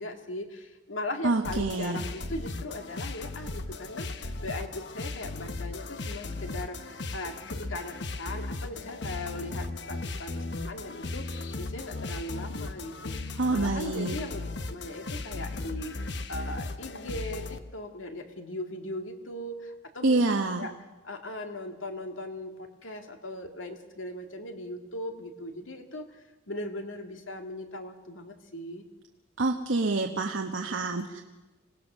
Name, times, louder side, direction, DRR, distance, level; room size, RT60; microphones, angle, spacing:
voice 1, 0.0-16.0 16.3-20.7 21.0-28.8, left 1 dB, 90° left, 5 dB, 2.2 m, -39 dB
voice 2, 1.2-2.0 13.4-14.2 20.0-20.7 29.4-31.2, right 3 dB, 80° right, 3 dB, 1.2 m, -27 dB
sound 1, 1.4-17.6, left 2 dB, 60° left, 1.1 m, -37 dB
26.0 x 18.5 x 6.2 m, 1.1 s
head